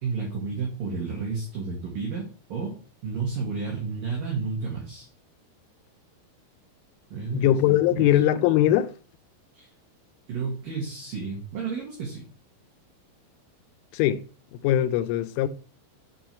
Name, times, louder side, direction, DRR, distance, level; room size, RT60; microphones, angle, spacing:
voice 1, 0.0-2.7 3.0-5.1 7.1-7.6 7.9-8.2 9.5-9.7 10.3-12.2, right 5 dB, 60° right, 2.7 m, -31 dB
voice 2, 7.3-8.9 13.9-14.2 14.5-15.5, left 12 dB, 90° left, 3.1 m, -21 dB
7.6 x 4.5 x 4.3 m
omnidirectional pair, 5.5 m